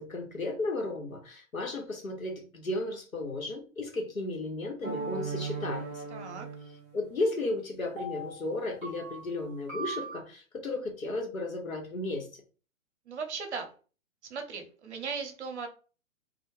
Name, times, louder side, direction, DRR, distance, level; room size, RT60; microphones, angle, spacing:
voice 1, 0.0-6.0 6.9-12.3, left 2 dB, 80° left, 2 dB, 0.8 m, -34 dB
sound 1, 4.8-7.1 8.0-10.2, right 3 dB, 15° right, 0.4 m, -38 dB
voice 2, 6.1-6.5 13.1-13.7 14.3-15.7, right 5 dB, 55° right, 5 dB, 0.7 m, -37 dB
2.2 x 2.1 x 2.9 m, 0.37 s
figure-of-eight pair, 115°, 40 cm